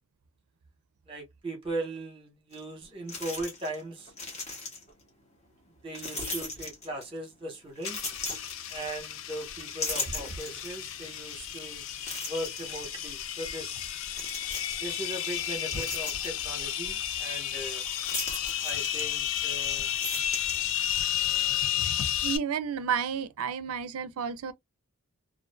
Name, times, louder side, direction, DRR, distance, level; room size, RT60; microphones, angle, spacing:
voice 1, 1.1-4.1 5.8-8.1 8.7-11.8 12.3-13.8 14.8-17.8 18.6-19.9 21.1-21.9, right 1 dB, 25° right, 1.0 m, -38 dB
sound 1, 2.5-2.6 3.1-3.8 4.1-5.0 5.9-7.2 7.8-9.2 9.6-10.8 11.3-11.4 12.0-12.9 14.1-15.0 15.4-16.6 18.0-19.5 19.8-21.1, left 2 dB, 30° left, 1.0 m, -37 dB
sound 2, 7.8-22.4, left 10 dB, 60° left, 0.4 m, -32 dB
voice 2, 22.2-24.5, right 7 dB, 75° right, 0.4 m, -31 dB
2.4 x 2.4 x 2.2 m
head